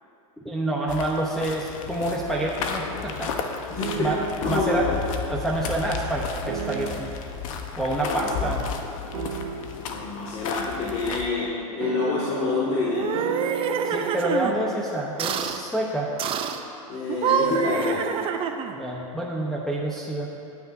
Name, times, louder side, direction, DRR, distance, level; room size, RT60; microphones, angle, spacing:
voice 1, 0.4-3.4 3.9-4.2 4.5-4.9 5.3-7.1 7.8-8.7 13.8-16.1 18.8-20.3, right 1 dB, ahead, -5 dB, 0.9 m, -27 dB
sound 1, 0.9-11.3, left 6 dB, 65° left, 1.1 m, -33 dB
voice 2, 3.7-4.1 4.4-4.9 8.0-8.5 9.8-13.2 16.9-18.0, left 3 dB, 35° left, -6 dB, 2.1 m, -27 dB
sound 2, 3.8-4.6 6.5-7.3 9.1-10.0 11.8-14.5, right 9 dB, 75° right, 0.8 m, -34 dB
sound 3, 12.9-14.6 15.2-15.6 16.2-16.6 17.1-18.8, right 7 dB, 30° right, 0.6 m, -26 dB
19.5 x 9.2 x 2.7 m, 2.7 s
supercardioid pair, 125°, 18 cm